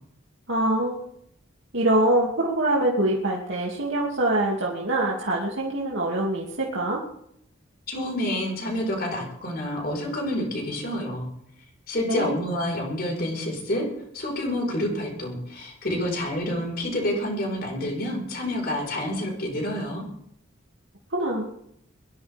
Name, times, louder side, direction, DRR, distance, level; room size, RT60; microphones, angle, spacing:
voice 1, 0.5-1.1 1.7-7.0 12.1-12.4 21.1-21.5, right 1 dB, 65° right, -3 dB, 2.6 m, -24 dB
voice 2, 7.9-11.3 11.9-13.9 14.1-20.0, left 1 dB, 45° left, 0 dB, 4.9 m, -28 dB
22.0 x 13.5 x 3.6 m, 0.72 s
head